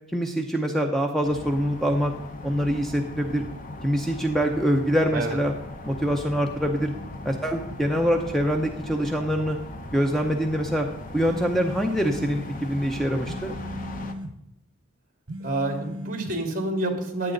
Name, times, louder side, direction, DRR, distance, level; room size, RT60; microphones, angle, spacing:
voice 1, 0.1-2.1 2.4-3.4 3.8-5.5 5.8-6.9 7.2-9.6 9.9-10.9 11.1-13.5, equal, ahead, 3 dB, 0.7 m, -24 dB
sound 1, 1.2-14.1, left 2 dB, 40° left, 1.0 m, -38 dB
sound 2, 11.3-12.3 13.3-14.4 15.3-16.4, left 1 dB, 65° right, 1.3 m, -36 dB
voice 2, 15.4-17.3, right 2 dB, 40° right, 4 dB, 2.3 m, -28 dB
15.0 x 10.0 x 3.9 m, 0.87 s
head